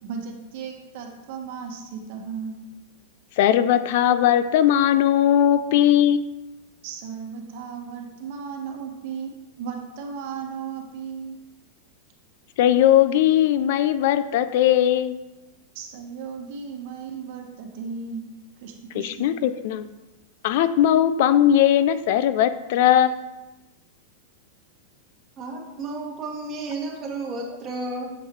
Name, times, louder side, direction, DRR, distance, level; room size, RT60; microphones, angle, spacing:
voice 1, 0.0-2.6 6.8-9.3 9.6-11.4 15.7-18.3 18.6-19.3, right 6 dB, 55° right, 2 dB, 1.2 m, -35 dB
voice 2, 3.4-6.2 12.6-15.2 18.9-19.8 20.4-23.2, left 11 dB, 60° left, 13 dB, 0.4 m, -19 dB
voice 3, 25.4-28.1, right 2 dB, 25° right, -1 dB, 1.5 m, -32 dB
7.3 x 5.4 x 3.1 m, 1.0 s
supercardioid pair, 140°, 0 cm